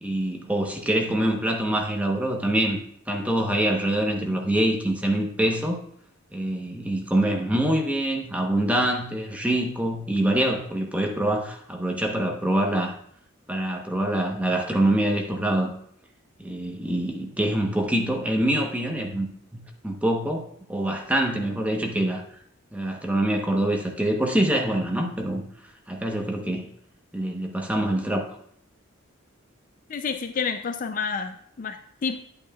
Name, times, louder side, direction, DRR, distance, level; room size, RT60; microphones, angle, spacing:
voice 1, 0.0-2.8 3.1-5.8 6.3-12.9 13.5-15.7 16.4-22.2 22.7-25.4 25.9-26.7 27.1-28.3, right 1 dB, 5° right, 1 dB, 0.9 m, -25 dB
voice 2, 29.9-32.2, left 5 dB, 40° left, 8 dB, 0.4 m, -29 dB
8.7 x 8.6 x 2.3 m, 0.66 s
head